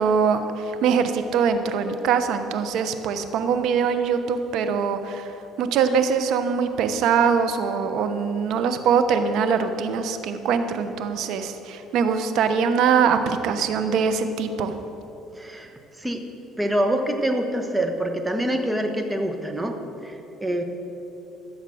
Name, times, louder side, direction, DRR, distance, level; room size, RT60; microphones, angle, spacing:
voice 1, 0.0-5.3 5.6-14.7, right 6 dB, 70° right, 9 dB, 0.9 m, -23 dB
voice 2, 15.4-15.7 16.0-16.2 16.6-19.8 20.0-20.2 20.4-20.6, right 1 dB, 10° right, 5 dB, 1.3 m, -25 dB
14.5 x 7.3 x 6.3 m, 3.0 s
cardioid pair, 105°, 0 cm